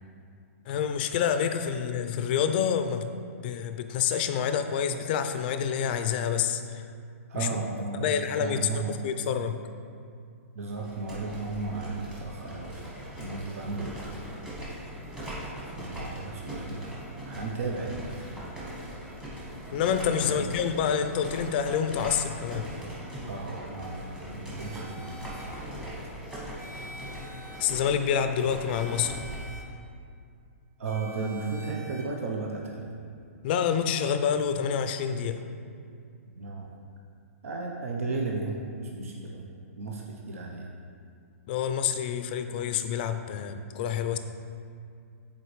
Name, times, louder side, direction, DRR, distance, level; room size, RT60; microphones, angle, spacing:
voice 1, 0.7-3.1 3.4-6.9 7.3-7.5 8.0-9.6 19.7-22.7 27.6-29.1 33.4-35.4 41.5-44.2, left 8 dB, 40° left, 8 dB, 0.4 m, -27 dB
voice 2, 7.3-8.1 8.4-9.0 10.5-12.9 13.2-14.0 15.6-18.1 20.2-20.5 23.3-25.4 30.8-32.9 36.3-36.7 37.4-39.5 39.8-40.7, right 3 dB, 70° right, -1 dB, 0.8 m, -34 dB
sound 1, 10.7-29.5, equal, 10° right, 1.3 m, -40 dB
sound 2, 24.6-25.4 26.6-27.6 28.7-29.6 30.8-32.0, equal, 85° right, 1.1 m, -46 dB
8.1 x 4.2 x 3.2 m, 2.3 s
hypercardioid pair, 150°, 8 cm